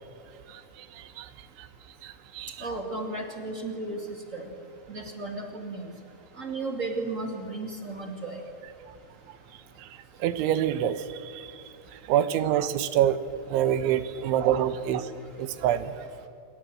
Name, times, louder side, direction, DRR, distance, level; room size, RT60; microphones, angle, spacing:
voice 1, 0.5-1.3 1.6-1.7 2.0-2.7 9.8-9.9 10.2-11.6 12.1-13.2 13.5-15.1 15.4-15.9, right 10 dB, 80° right, 12 dB, 3.4 m, -26 dB
voice 2, 2.6-4.5 4.9-5.9 6.4-8.4, right 2 dB, 25° right, 3 dB, 1.8 m, -34 dB
28.0 x 22.0 x 7.8 m, 2.6 s
omnidirectional pair, 5.4 m